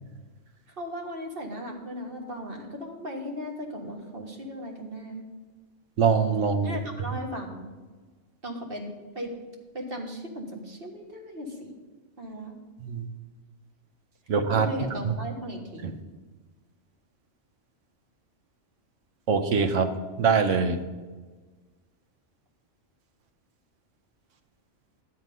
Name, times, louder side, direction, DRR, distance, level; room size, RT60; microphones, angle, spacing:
voice 1, 0.8-5.3 6.6-7.7 8.4-9.3 9.7-11.7 12.2-12.6 14.5-15.9, equal, 50° right, 1 dB, 1.7 m, -37 dB
voice 2, 6.0-6.8 12.8-13.0 14.3-14.7 15.8-15.9 19.3-19.9 20.2-20.8, right 5 dB, 90° right, 8 dB, 1.2 m, -23 dB
11.5 x 7.9 x 5.3 m, 1.3 s
omnidirectional pair, 1.2 m